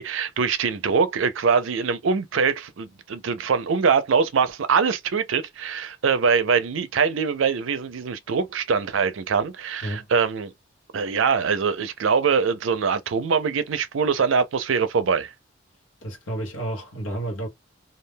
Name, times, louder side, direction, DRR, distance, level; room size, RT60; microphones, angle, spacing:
voice 1, 0.0-10.5 10.9-15.3, right 5 dB, 85° right, 0.5 m, -23 dB
voice 2, 16.0-17.5, right 1 dB, 90° left, 0.9 m, -31 dB
2.3 x 2.2 x 3.3 m
head